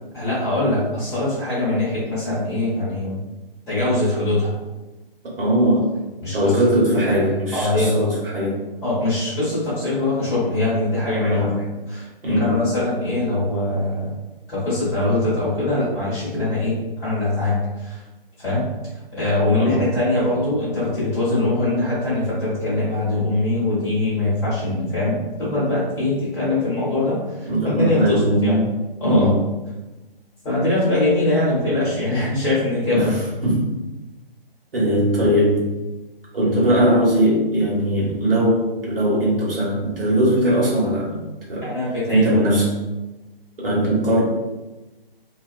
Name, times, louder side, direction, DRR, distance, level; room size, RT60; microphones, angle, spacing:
voice 1, 0.1-3.2 3.7-4.6 6.2-6.5 7.5-8.1 8.8-14.1 14.5-18.0 18.4-18.6 19.1-28.6 29.0-29.3 30.4-33.1 41.6-42.5, left 2 dB, 10° left, -10 dB, 0.8 m, -22 dB
voice 2, 5.4-5.9 6.3-8.6 11.3-11.7 12.2-12.7 19.5-19.9 27.4-28.7 29.0-29.4 32.9-33.2 33.4-33.7 34.7-35.7 36.3-41.7 42.1-42.8 43.6-44.2, right 1 dB, 70° right, -5 dB, 1.2 m, -20 dB
2.3 x 2.2 x 2.4 m, 1.1 s
figure-of-eight pair, 140°, 29 cm